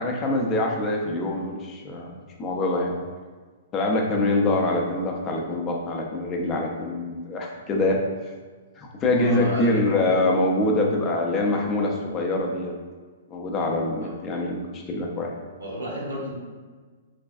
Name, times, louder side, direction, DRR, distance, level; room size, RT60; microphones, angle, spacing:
voice 1, 0.0-2.1 2.4-2.9 3.7-8.0 8.8-12.7 13.3-15.3, left 2 dB, 25° left, 0 dB, 0.4 m, -24 dB
voice 2, 9.1-9.8 14.0-14.1 15.6-16.3, equal, 85° right, -4 dB, 0.9 m, -32 dB
3.2 x 2.2 x 2.4 m, 1.4 s
hypercardioid pair, 120°, 0 cm